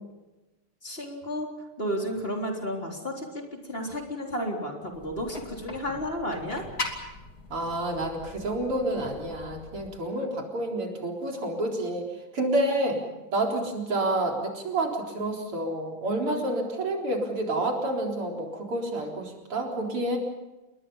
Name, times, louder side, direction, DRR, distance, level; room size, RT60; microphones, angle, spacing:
voice 1, 0.8-1.5 1.8-3.4 3.7-6.6, equal, 25° left, 1 dB, 3.9 m, -32 dB
sound 1, 4.9-9.9, left 2 dB, 45° left, 3.3 m, -40 dB
voice 2, 7.5-13.0 13.3-20.2, right 1 dB, 90° right, 1 dB, 5.0 m, -29 dB
29.0 x 22.0 x 5.6 m, 1.1 s
omnidirectional pair, 2.4 m